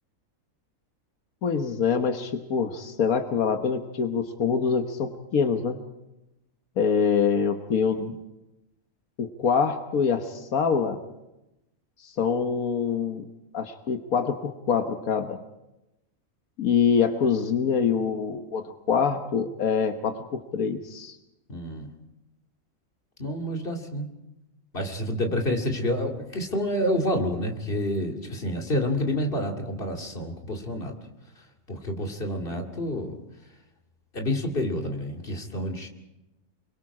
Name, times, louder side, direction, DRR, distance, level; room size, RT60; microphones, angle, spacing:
voice 1, 1.4-5.8 6.8-8.2 9.2-11.0 12.0-13.2 13.5-15.4 16.6-21.2, left 6 dB, 85° left, 6 dB, 1.6 m, -25 dB
voice 2, 21.5-21.9 23.2-24.1 24.7-30.9 31.7-33.1 34.1-35.9, left 1 dB, 40° left, 2 dB, 2.6 m, -28 dB
29.5 x 22.5 x 4.9 m, 0.95 s
omnidirectional pair, 1.5 m